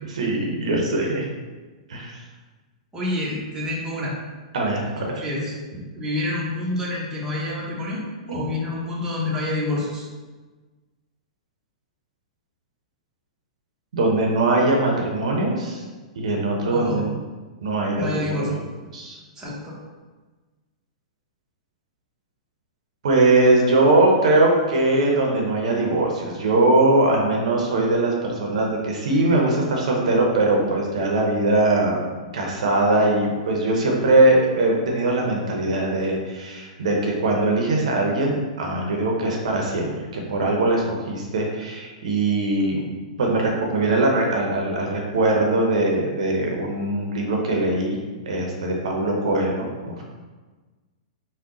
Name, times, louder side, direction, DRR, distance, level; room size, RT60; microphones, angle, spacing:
voice 1, 0.1-1.3 1.9-2.2 4.5-5.1 8.3-8.4 13.9-15.8 16.2-17.1 17.6-18.6 18.9-19.2 23.0-32.1 32.3-42.8 43.2-48.0 48.3-50.0, right 2 dB, 75° right, 0 dB, 0.8 m, -21 dB
voice 2, 2.9-4.2 5.0-5.5 5.9-10.1 16.7-17.0 18.0-18.5 19.3-19.8, left 2 dB, 15° right, -5 dB, 1.0 m, -28 dB
3.6 x 2.3 x 3.8 m, 1.3 s
hypercardioid pair, 125°, 4 cm